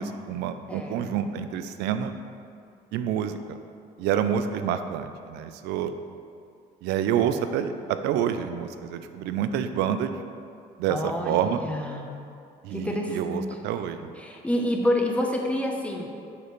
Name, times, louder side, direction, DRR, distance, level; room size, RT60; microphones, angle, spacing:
voice 1, 0.0-2.2 2.9-3.6 4.0-5.9 6.8-10.1 10.8-11.0 11.2-11.6 12.6-14.1, right 9 dB, 85° right, 9 dB, 0.4 m, -28 dB
voice 2, 0.7-1.1 10.9-12.1 12.7-13.4 14.2-16.1, left 1 dB, 5° left, 1 dB, 0.7 m, -28 dB
6.7 x 5.0 x 3.1 m, 2.4 s
cardioid pair, 110°, 17 cm